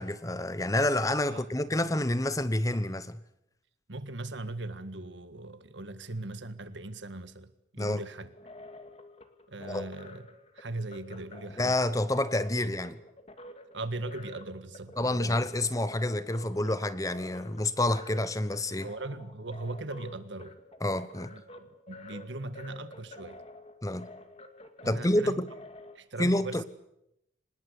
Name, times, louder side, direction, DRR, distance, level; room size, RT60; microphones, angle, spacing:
voice 1, 0.0-3.2 7.8-8.0 9.7-9.8 11.6-13.0 15.0-18.9 20.8-21.3 23.8-24.1 24.8-25.5 26.2-26.6, left 1 dB, 20° left, 1.0 m, -28 dB
voice 2, 3.9-8.3 9.5-10.3 10.5-11.8 12.6-12.8 13.7-15.5 18.8-20.6 21.2-23.4 24.8-25.4 26.0-26.6, right 2 dB, 80° right, 1.7 m, -39 dB
sound 1, 8.2-26.0, left 2 dB, 35° left, 2.2 m, -49 dB
25.0 x 20.5 x 8.4 m
head